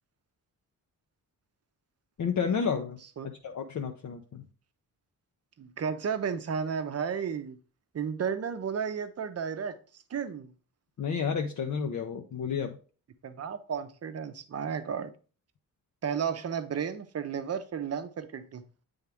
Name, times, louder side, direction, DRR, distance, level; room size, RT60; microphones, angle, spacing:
voice 1, 2.2-3.0 3.2-4.4 11.0-12.8, left 6 dB, 55° left, 0.6 m, -31 dB
voice 2, 5.6-7.6 7.9-9.8 10.1-10.5 13.2-15.1 16.0-18.6, right 7 dB, 45° right, 0.7 m, -33 dB
8.1 x 3.5 x 3.4 m
cardioid pair, 90°, 36 cm